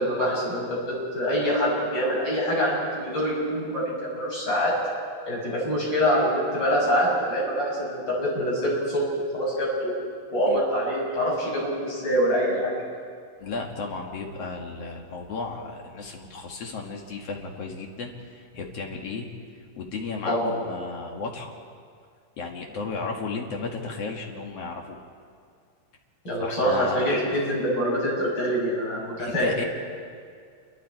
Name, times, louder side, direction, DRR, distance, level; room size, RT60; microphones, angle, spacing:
voice 1, 0.0-4.7 5.3-9.1 9.3-9.9 10.3-12.7 20.2-20.5 26.2-29.5, equal, 20° left, -4 dB, 7.5 m, -25 dB
voice 2, 13.4-19.3 19.8-21.5 22.4-25.0 26.4-27.2 29.2-29.6, left 4 dB, 70° left, 1 dB, 1.5 m, -34 dB
28.0 x 23.5 x 4.6 m, 2.2 s
omnidirectional pair, 5.5 m